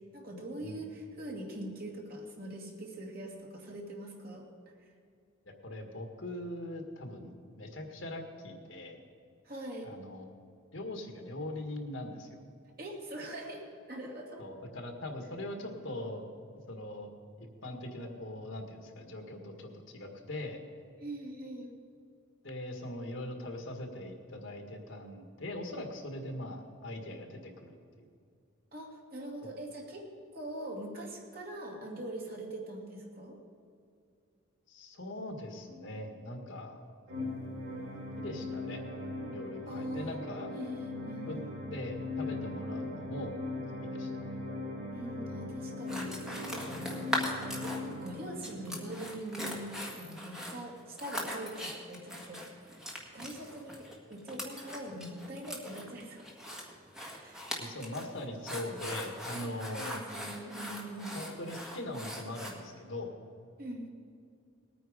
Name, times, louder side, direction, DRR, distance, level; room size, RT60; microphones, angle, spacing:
voice 1, 0.0-4.5 4.8-4.9 9.4-9.9 12.8-14.4 21.0-21.8 28.7-30.1 30.3-33.4 39.7-40.2 40.5-41.5 44.9-52.8 53.1-56.6 57.1-57.4 59.8-61.1 63.6-63.9, right 1 dB, 45° right, 0 dB, 2.4 m, -43 dB
voice 2, 5.6-9.0 9.8-10.2 10.7-12.4 14.4-16.2 16.7-17.1 17.4-20.6 22.4-28.1 29.4-29.5 34.7-36.8 38.2-38.8 39.3-40.5 41.3-41.4 41.7-43.4 43.8-44.4 57.6-60.0 61.1-63.1, left 1 dB, 65° left, 4 dB, 1.7 m, -41 dB
sound 1, 37.1-49.0, left 2 dB, 85° right, 3.5 m, -39 dB
sound 2, 45.9-48.1 48.4-62.5, equal, 5° right, 1.7 m, -40 dB
19.5 x 9.2 x 5.1 m, 2.4 s
head